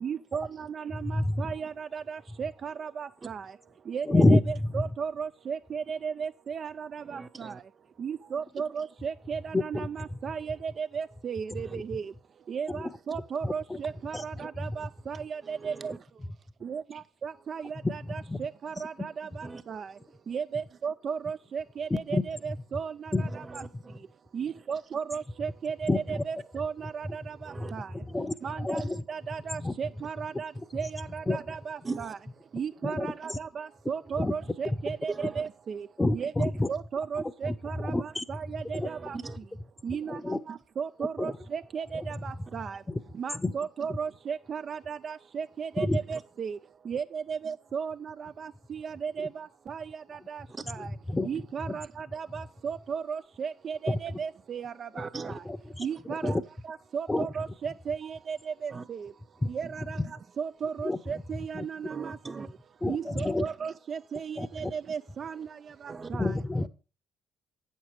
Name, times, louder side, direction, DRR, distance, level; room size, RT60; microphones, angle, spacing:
voice 1, 0.0-3.4 3.9-7.5 8.0-12.0 12.5-15.9 16.6-16.8 17.2-17.6 17.9-19.3 19.7-19.8 20.3-22.9 24.3-27.2 27.7-27.9 28.4-28.8 29.1-32.2 32.5-35.8 36.1-37.9 38.3-39.2 39.8-40.2 40.8-42.8 43.2-46.6 46.9-47.9 48.7-49.3 49.7-49.8 50.3-50.4 50.7-50.9 51.2-55.0 55.8-56.4 56.9-58.4 58.6-59.0 59.5-60.0 60.4-62.2 62.9-65.5 66.1-66.3, right 6 dB, 50° right, 0.3 m, -35 dB
voice 2, 1.0-1.5 4.1-4.8 9.5-9.9 11.7-11.8 12.7-12.8 13.4-13.8 14.1-14.7 17.8-18.0 18.3-18.4 21.9-22.2 23.1-23.3 25.9-26.2 27.6-27.7 28.0-29.0 29.5-29.7 31.3-31.4 32.8-33.4 34.2-34.3 34.6-34.8 36.0-36.7 37.2-37.5 37.8-38.2 38.7-38.9 39.9-40.4 41.2-41.3 41.9-42.0 42.9-43.0 43.3-43.5 45.8-46.0 51.1-51.7 53.9-54.0 55.8-56.4 57.1-57.3 59.4-59.5 59.8-60.1 60.8-61.0 61.5-61.7 62.8-63.4 64.4-64.7 66.1-66.7, left 2 dB, 15° left, 0.7 m, -28 dB
voice 3, 7.0-7.6 11.6-11.8 15.4-16.0 19.4-19.6 23.2-24.0 27.4-27.7 31.8-32.1 35.1-35.4 38.8-39.4 46.1-46.2 50.5-50.6 55.0-55.4 55.9-56.0 58.7-58.9 61.9-62.5 65.9-66.1, right 4 dB, 30° right, 0.8 m, -40 dB
8.7 x 6.6 x 4.6 m
hypercardioid pair, 50°, 0 cm